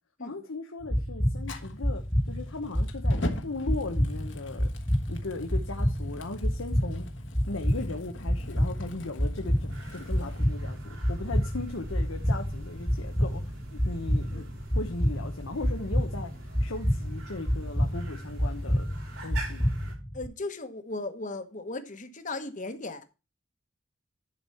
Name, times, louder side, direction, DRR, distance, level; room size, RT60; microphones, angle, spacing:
voice 1, 0.2-4.7 5.1-7.1 7.5-13.4 13.7-14.4 14.7-16.3 16.6-18.8 19.2-19.7, left 3 dB, 85° left, 1.1 m, -37 dB
sound 1, 0.8-20.3, equal, 5° left, 1.5 m, -29 dB
Fire, 1.4-10.4, left 1 dB, 65° left, 1.4 m, -42 dB
sound 2, 9.7-19.9, right 2 dB, 75° right, 6.1 m, -45 dB
voice 2, 20.1-23.0, left 2 dB, 40° left, 1.2 m, -36 dB
11.0 x 4.8 x 5.6 m
head